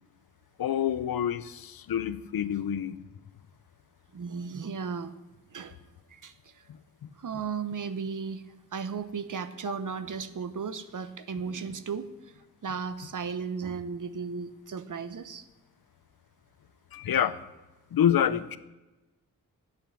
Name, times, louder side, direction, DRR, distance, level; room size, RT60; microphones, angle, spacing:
voice 1, 0.6-3.0 6.7-7.1 16.9-17.4 17.9-18.6, left 9 dB, 85° left, 14 dB, 0.7 m, -27 dB
voice 2, 4.1-5.1 5.5-5.8 6.1-6.6 7.2-8.4 8.7-12.3 12.6-15.5, right 5 dB, 60° right, 12 dB, 1.0 m, -35 dB
10.5 x 8.9 x 7.5 m, 1.1 s
cardioid pair, 80°, 35 cm